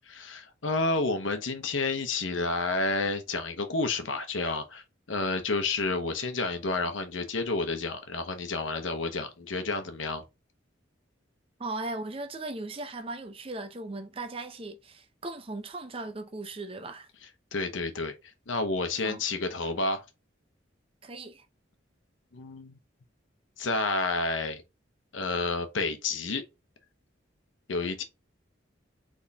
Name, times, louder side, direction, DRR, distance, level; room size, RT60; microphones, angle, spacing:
voice 1, 0.1-10.2 17.5-18.1 18.5-20.0 22.3-22.8 23.6-24.6 25.1-26.4 27.7-28.0, left 3 dB, 85° left, 0.9 m, -30 dB
voice 2, 11.6-17.1 19.0-19.2 21.0-21.4, right 2 dB, 30° right, 0.6 m, -38 dB
4.2 x 3.6 x 3.4 m
head